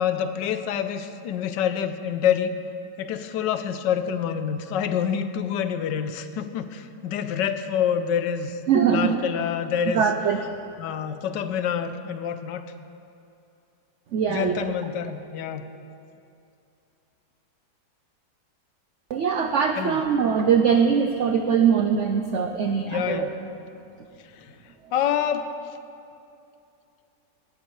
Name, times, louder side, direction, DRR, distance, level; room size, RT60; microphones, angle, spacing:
voice 1, 0.0-2.5 3.0-8.6 8.9-10.0 10.8-12.6 14.3-15.7 19.8-20.0 22.9-23.3 24.3-24.6 24.9-25.5, left 8 dB, 80° left, 10 dB, 1.3 m, -27 dB
voice 2, 8.7-9.2 9.9-10.4 14.1-14.7 19.1-23.3 24.8-24.9, right 7 dB, 80° right, 5 dB, 0.6 m, -22 dB
18.0 x 12.5 x 3.2 m, 2.6 s
omnidirectional pair, 1.9 m